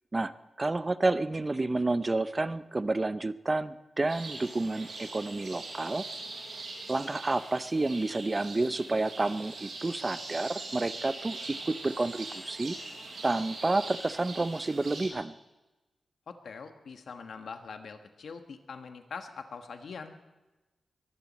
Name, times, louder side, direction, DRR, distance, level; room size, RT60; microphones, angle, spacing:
voice 1, 0.6-6.0 6.9-12.8 13.2-15.4, right 2 dB, 30° right, 14 dB, 0.6 m, -30 dB
sound 1, 4.1-15.1, right 3 dB, 80° right, 5.9 m, -42 dB
voice 2, 16.3-20.2, left 5 dB, 80° left, 6 dB, 1.4 m, -43 dB
22.5 x 15.5 x 4.2 m, 1.1 s
cardioid pair, 75°, 0 cm